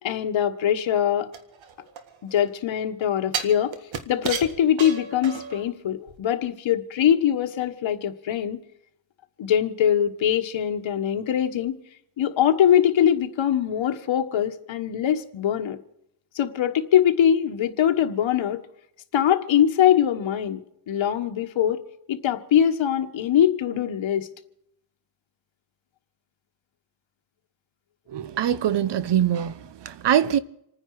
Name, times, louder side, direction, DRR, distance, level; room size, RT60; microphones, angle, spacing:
voice 1, 0.0-1.3 2.2-3.7 4.1-8.6 9.4-11.8 12.2-15.8 16.3-18.6 19.1-20.6 20.9-21.8 22.1-24.3, left 10 dB, 85° left, 1.5 m, -22 dB
sound 1, 1.3-2.5 3.3-5.7 6.1-6.2, right 6 dB, 90° right, 1.9 m, -33 dB
voice 2, 28.1-30.4, right 10 dB, 65° right, 1.0 m, -23 dB
27.5 x 9.8 x 4.8 m
wide cardioid pair, 115°, 46 cm